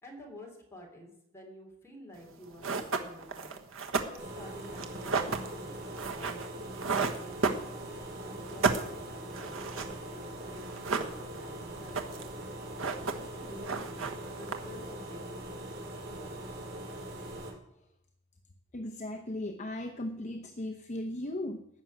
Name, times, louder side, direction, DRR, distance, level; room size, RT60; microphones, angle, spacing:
voice 1, 0.0-5.8 6.2-6.7 7.0-12.2 13.0-15.8 16.1-16.3, left 1 dB, 15° left, -1 dB, 3.5 m, -50 dB
sound 1, 2.2-2.3 2.6-8.1 8.4-10.3 10.6-11.5 11.8-12.4 12.6-13.4 13.6-14.9, right 4 dB, 85° right, 1.4 m, -33 dB
sound 2, 4.2-17.5, right 1 dB, 65° right, 5.7 m, -42 dB
voice 2, 18.7-21.7, left 1 dB, 35° left, 3 dB, 0.9 m, -37 dB
15.5 x 6.3 x 9.4 m, 0.81 s
head